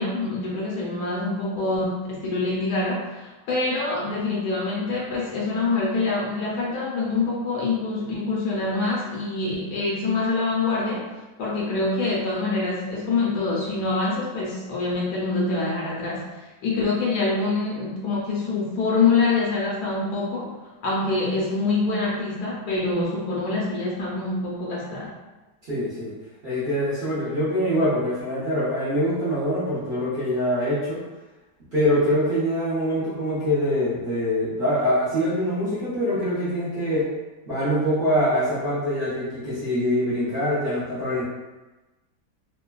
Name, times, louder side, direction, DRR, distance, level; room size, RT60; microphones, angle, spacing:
voice 1, 0.0-11.1 11.4-20.5 20.8-25.2, left 3 dB, 70° left, -4 dB, 1.1 m, -25 dB
voice 2, 25.6-26.1 26.4-31.0 31.7-37.1 37.5-41.2, equal, 45° right, -12 dB, 1.0 m, -24 dB
3.2 x 2.2 x 2.2 m, 1.1 s
omnidirectional pair, 1.8 m